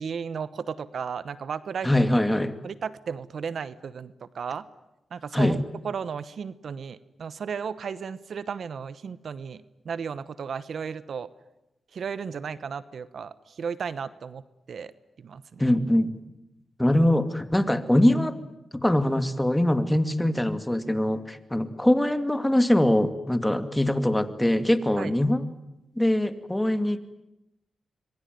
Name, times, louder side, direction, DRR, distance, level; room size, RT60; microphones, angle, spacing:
voice 1, 0.0-1.9 2.6-4.7 5.1-11.3 11.9-14.4 14.7-14.9 15.2-15.6 25.0-25.1, right 6 dB, 70° right, 16 dB, 1.0 m, -34 dB
voice 2, 1.8-2.6 5.3-5.6 15.6-16.1 16.8-18.4 18.7-25.5 26.0-27.0, left 1 dB, 10° left, 10 dB, 2.3 m, -23 dB
26.0 x 22.5 x 9.4 m, 0.90 s
cardioid pair, 55°, 0 cm